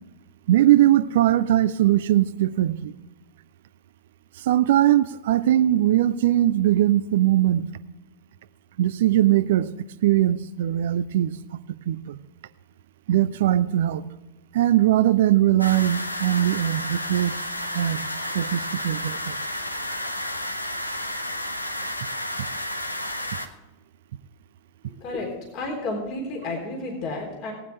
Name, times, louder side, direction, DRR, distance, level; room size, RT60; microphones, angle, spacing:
voice 1, 0.5-3.0 4.4-7.7 8.8-9.7 10.0-11.4 11.9-12.2 13.1-14.0 14.5-17.3 17.7-18.1 18.3-19.4 22.4-22.5, right 13 dB, 55° right, 15 dB, 0.5 m, -20 dB
sound 1, 15.6-23.5, left 1 dB, 85° left, 0.9 m, -31 dB
voice 2, 24.8-27.5, left 2 dB, 40° left, 0 dB, 3.6 m, -31 dB
18.0 x 9.6 x 3.4 m, 1.1 s
figure-of-eight pair, 90°, 0 cm